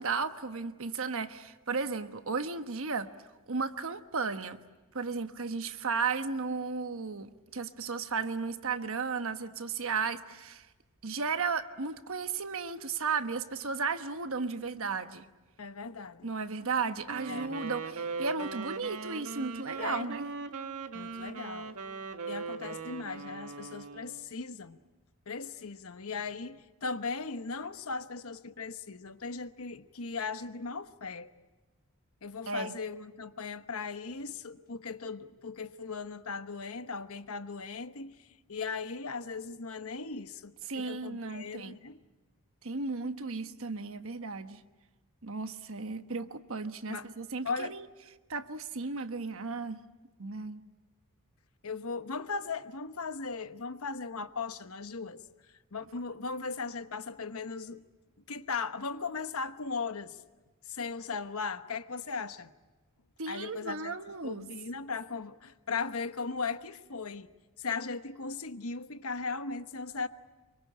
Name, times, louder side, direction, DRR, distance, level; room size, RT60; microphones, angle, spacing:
voice 1, 0.0-3.1 3.5-4.6 4.9-10.7 11.0-15.3 16.2-20.3 32.5-32.7 40.7-41.7 42.6-44.6 45.2-47.9 48.3-49.8 50.2-50.6 63.2-64.5, right 4 dB, 65° right, 1.2 m, -34 dB
voice 2, 15.6-16.3 17.3-17.6 19.8-20.1 20.9-21.8 22.3-24.8 25.3-31.3 32.2-42.0 46.9-47.1 47.4-47.7 51.6-55.2 55.7-57.8 58.3-60.2 60.6-62.5 63.3-63.9 64.2-67.3 67.6-70.1, left 4 dB, 70° left, 1.1 m, -38 dB
Wind instrument woodwind instrument, 17.0-24.3, right 4 dB, 80° right, 1.8 m, -39 dB
26.0 x 24.0 x 8.7 m
head